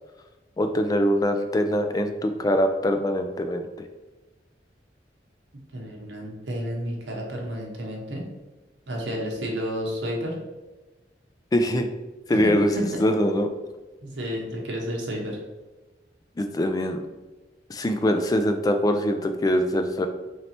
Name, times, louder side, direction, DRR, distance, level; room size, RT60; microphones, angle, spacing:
voice 1, 0.6-3.7 11.5-11.9 12.3-13.5 16.4-17.0 17.7-20.1, equal, 20° left, 7 dB, 0.3 m, -23 dB
voice 2, 5.7-8.2 8.9-10.3 12.7-12.8 14.0-15.4, equal, 85° right, -1 dB, 0.8 m, -31 dB
3.2 x 2.7 x 4.2 m, 1.2 s
head